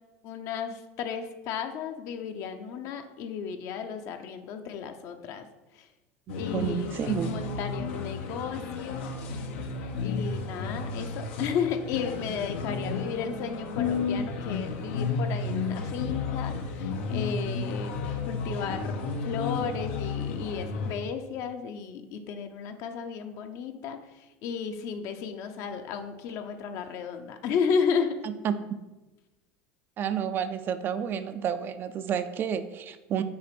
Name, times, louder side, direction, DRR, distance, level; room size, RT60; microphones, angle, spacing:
voice 1, 0.2-5.5 5.7-5.9 6.3-9.1 10.0-18.0 18.3-28.3, left 6 dB, 50° left, 7 dB, 0.7 m, -33 dB
sound 1, 6.3-20.9, left 4 dB, 85° left, 1.0 m, -32 dB
voice 2, 6.5-7.3 28.2-28.6 30.0-33.2, right 8 dB, 35° right, 10 dB, 0.4 m, -30 dB
6.1 x 4.1 x 6.0 m, 1.1 s
supercardioid pair, 135°, 6 cm